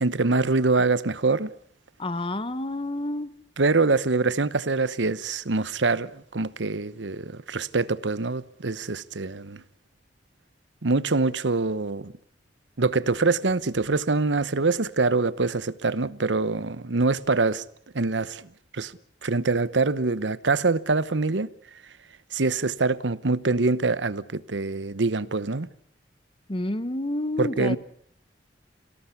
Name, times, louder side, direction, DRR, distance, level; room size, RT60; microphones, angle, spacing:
voice 1, 0.0-1.5 3.6-9.6 10.8-12.1 12.8-17.6 17.9-18.9 19.2-21.5 22.3-25.7 27.4-27.8, right 3 dB, 85° right, 1.0 m, -24 dB
voice 2, 2.0-3.3 26.5-27.8, left 1 dB, 30° left, 1.1 m, -29 dB
27.5 x 18.0 x 8.3 m
head